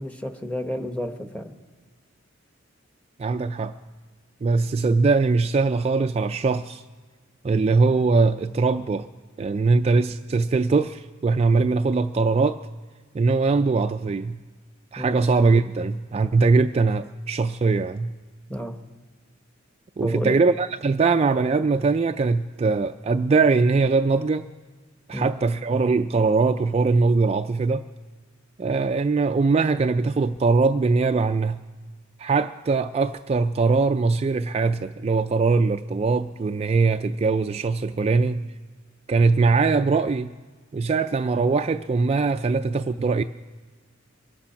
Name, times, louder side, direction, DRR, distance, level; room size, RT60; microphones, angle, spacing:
voice 1, 0.0-1.5 15.0-15.2 18.5-18.7 20.0-20.4 25.1-25.4, equal, 5° left, 1.1 m, -31 dB
voice 2, 3.2-3.8 4.4-6.8 7.4-9.1 9.4-12.6 13.1-14.4 14.9-18.1 20.0-24.5 25.1-27.9 28.6-31.6 32.2-38.5 39.1-40.3 40.7-43.2, right 4 dB, 30° right, 0.3 m, -21 dB
23.5 x 8.5 x 5.8 m
head